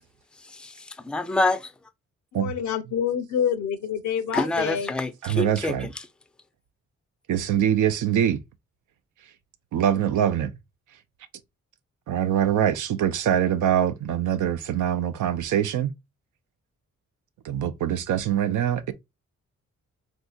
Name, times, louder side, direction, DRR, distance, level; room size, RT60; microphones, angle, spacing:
voice 1, 0.5-1.7 4.3-5.9, left 2 dB, 5° left, 0.4 m, -27 dB
voice 2, 2.3-4.9, left 8 dB, 75° left, 0.6 m, -27 dB
voice 3, 5.2-5.9 7.3-8.4 9.7-10.5 12.1-15.9 17.4-18.9, right 10 dB, 85° right, 0.5 m, -23 dB
3.6 x 2.7 x 2.3 m
cardioid pair, 70°, 30 cm